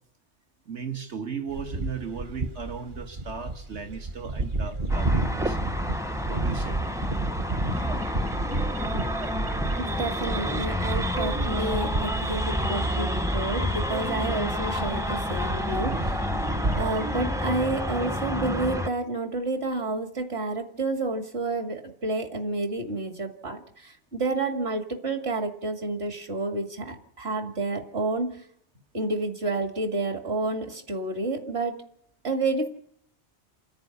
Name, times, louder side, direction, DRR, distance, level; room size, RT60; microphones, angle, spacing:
voice 1, 0.7-5.6 6.3-6.8, right 6 dB, 85° right, 5 dB, 2.2 m, -36 dB
sound 1, 1.5-17.2, right 2 dB, 50° right, 1.3 m, -32 dB
sound 2, 4.9-18.9, equal, 5° right, 0.5 m, -29 dB
voice 2, 9.8-16.3 16.8-28.4 28.9-31.8 32.2-32.7, right 2 dB, 65° right, 5 dB, 2.5 m, -30 dB
28.5 x 10.0 x 9.7 m, 0.66 s
omnidirectional pair, 1.1 m